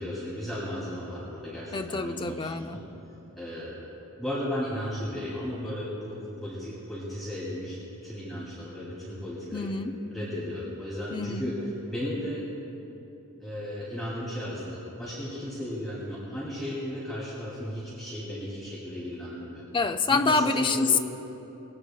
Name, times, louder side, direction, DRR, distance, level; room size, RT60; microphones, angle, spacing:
voice 1, 0.0-2.8 3.3-3.8 4.2-7.8 8.0-9.7 10.1-11.5 11.8-12.4 13.4-19.6 20.1-21.0, equal, ahead, -10 dB, 2.7 m, -35 dB
voice 2, 1.7-2.8 9.5-10.0 11.1-11.5 19.7-21.0, left 3 dB, 20° left, 7 dB, 0.4 m, -26 dB
21.5 x 16.0 x 2.3 m, 2.9 s
head